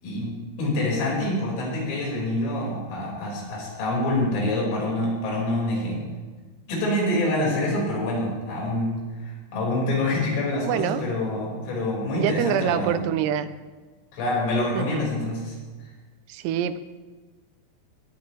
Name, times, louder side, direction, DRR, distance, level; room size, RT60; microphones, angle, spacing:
voice 1, 0.0-6.0 6.7-13.0 14.1-15.6, left 1 dB, 70° left, -3 dB, 8.0 m, -26 dB
voice 2, 10.6-11.0 12.1-13.5 14.8-15.1 16.3-16.8, right 10 dB, 90° right, 12 dB, 3.6 m, -25 dB
20.5 x 20.5 x 3.4 m, 1.3 s
omnidirectional pair, 5.9 m